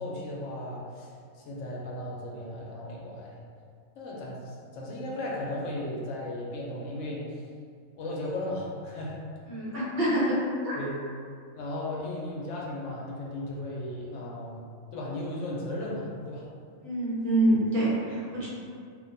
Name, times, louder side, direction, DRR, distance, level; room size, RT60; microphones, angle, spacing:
voice 1, 0.0-3.4 4.0-7.4 8.0-9.2 10.7-11.0 11.5-14.6 14.9-16.5, left 1 dB, 75° left, -4 dB, 0.9 m, -36 dB
voice 2, 9.5-10.4 10.6-10.8 16.8-18.5, right 1 dB, 55° right, -8 dB, 1.0 m, -26 dB
2.5 x 2.2 x 3.9 m, 2.2 s
omnidirectional pair, 1.3 m